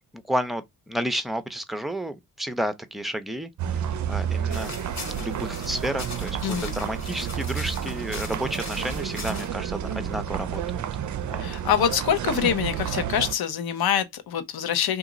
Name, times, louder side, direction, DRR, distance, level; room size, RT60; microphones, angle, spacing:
voice 1, 0.3-3.5 4.1-4.7 5.2-10.6 11.2-11.4, equal, ahead, 0.5 m, -31 dB
sound 1, 3.6-13.3, right 9 dB, 45° right, 0.5 m, -30 dB
sound 2, 4.5-9.5, left 4 dB, 40° left, 1.2 m, -39 dB
voice 2, 6.4-6.7 11.4-15.0, left 9 dB, 60° left, 0.8 m, -25 dB
2.8 x 2.5 x 3.8 m
supercardioid pair, 60°, 42 cm